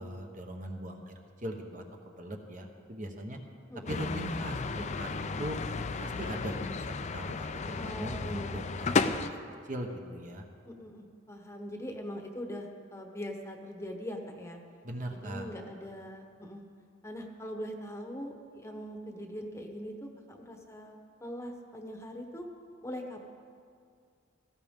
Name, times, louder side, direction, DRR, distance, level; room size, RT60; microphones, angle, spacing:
voice 1, 0.0-3.4 3.9-5.6 6.0-9.4 9.7-10.4 14.8-15.5, right 1 dB, 45° right, 3 dB, 1.2 m, -40 dB
voice 2, 3.7-4.2 7.7-8.8 10.7-14.6 15.1-16.6 17.0-22.5 22.8-23.2, equal, 15° left, 3 dB, 1.0 m, -42 dB
sound 1, 3.9-9.3, left 4 dB, 35° left, 0.5 m, -33 dB
17.5 x 14.5 x 3.7 m, 2.2 s
head